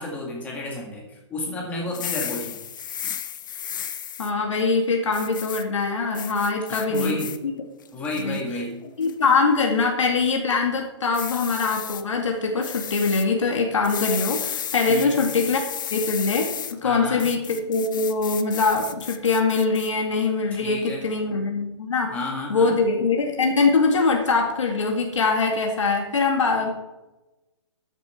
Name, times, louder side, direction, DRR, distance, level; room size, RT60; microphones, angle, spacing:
voice 1, 0.0-2.6 6.7-7.4 7.9-8.8 14.9-15.2 16.8-17.2 20.5-21.1 22.1-22.8, left 2 dB, 10° left, -1 dB, 2.0 m, -31 dB
sound 1, 1.9-4.3 5.1-5.6 6.1-7.4 7.8-8.4 9.0-9.3 11.1-12.0 12.6-13.3 13.8-16.7 17.2-19.9, left 9 dB, 40° left, 0.7 m, -33 dB
voice 2, 4.2-7.2 8.2-8.4 9.0-15.6 15.9-22.1 22.5-26.7, left 4 dB, 85° left, 2 dB, 2.2 m, -23 dB
13.0 x 7.6 x 4.5 m, 1.0 s
hypercardioid pair, 165°, 15 cm